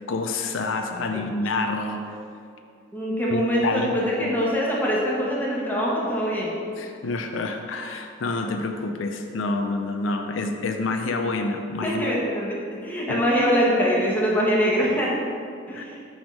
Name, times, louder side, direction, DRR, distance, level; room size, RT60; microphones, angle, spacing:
voice 1, 0.1-2.2 3.3-4.4 6.8-12.2 13.1-13.2 15.7-15.8, left 3 dB, 80° left, 5 dB, 0.4 m, -28 dB
voice 2, 2.9-6.5 11.8-15.1 15.7-16.0, equal, 10° left, -5 dB, 1.1 m, -23 dB
5.9 x 3.5 x 5.3 m, 2.4 s
head